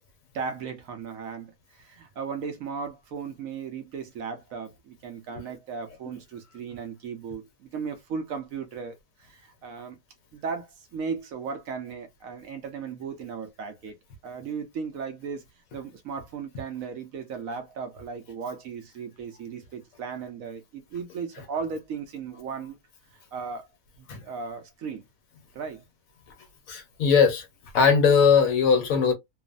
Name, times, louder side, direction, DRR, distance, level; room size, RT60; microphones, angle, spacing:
voice 1, 0.3-10.0 10.3-13.9 14.2-15.4 15.7-22.8 23.1-23.7 24.0-25.0 25.5-25.8, right 5 dB, 75° right, 1.1 m, -36 dB
voice 2, 26.7-27.5 27.7-29.1, left 6 dB, 70° left, 1.2 m, -20 dB
3.0 x 2.0 x 2.4 m
omnidirectional pair, 1.5 m